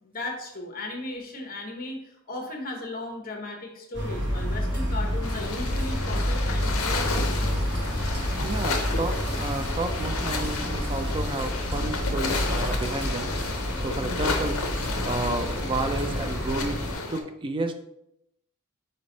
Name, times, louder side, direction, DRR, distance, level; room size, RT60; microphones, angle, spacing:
voice 1, 0.0-7.7, left 2 dB, 40° left, 2 dB, 0.9 m, -36 dB
sound 1, 3.9-16.9, equal, 55° right, 1.0 m, -29 dB
sound 2, 5.2-17.2, left 4 dB, 65° left, 0.6 m, -32 dB
voice 2, 8.4-13.3 13.8-14.6 15.0-16.8 17.1-17.8, right 2 dB, 20° right, 8 dB, 0.3 m, -31 dB
4.2 x 3.2 x 3.9 m, 0.81 s
head